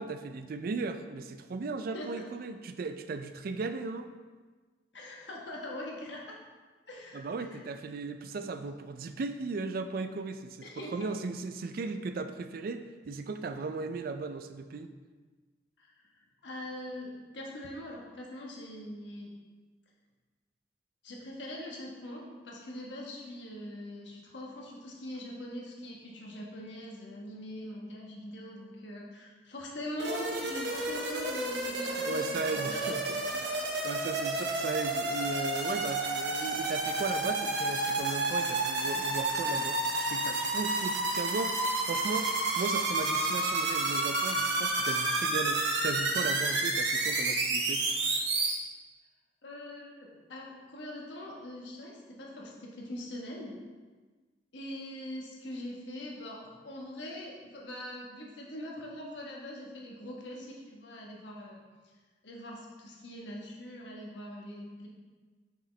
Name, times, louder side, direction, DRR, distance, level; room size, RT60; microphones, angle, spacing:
voice 1, 0.0-4.1 7.1-10.6 10.9-14.9 32.0-33.2 33.8-41.5 41.9-42.3 42.6-47.9, right 4 dB, 55° right, 8 dB, 0.4 m, -36 dB
voice 2, 1.9-2.2 4.9-6.4 6.9-7.2 7.5-7.6 10.6-10.9 15.8-19.3 21.0-33.4 49.4-53.6 54.5-61.6 62.2-64.9, left 1 dB, 80° left, -2 dB, 1.2 m, -42 dB
sound 1, 30.0-48.5, right 2 dB, 70° right, 0.8 m, -30 dB
6.1 x 4.8 x 3.2 m, 1.4 s
head